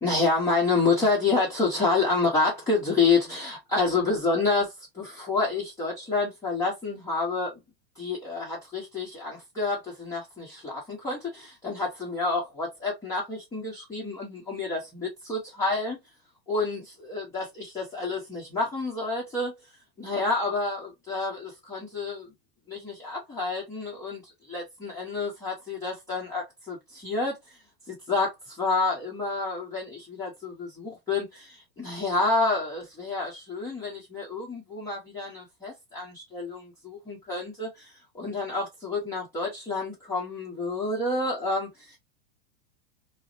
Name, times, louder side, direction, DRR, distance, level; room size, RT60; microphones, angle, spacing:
voice 1, 0.0-7.6 8.0-16.0 16.5-19.5 20.0-22.3 22.7-24.2 24.5-27.6 27.9-42.0, left 3 dB, 10° left, 1.0 m, -29 dB
6.0 x 2.1 x 2.6 m
supercardioid pair, 170°, 31 cm